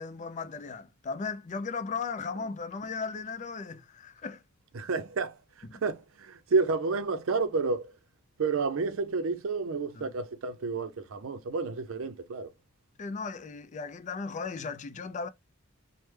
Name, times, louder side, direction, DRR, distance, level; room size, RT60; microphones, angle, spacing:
voice 1, 0.0-4.4 5.7-5.8 9.9-10.1 13.0-15.3, left 5 dB, 35° left, 0.4 m, -36 dB
voice 2, 4.7-8.0 8.4-12.5, right 4 dB, 70° right, 0.5 m, -30 dB
3.2 x 2.1 x 3.2 m
head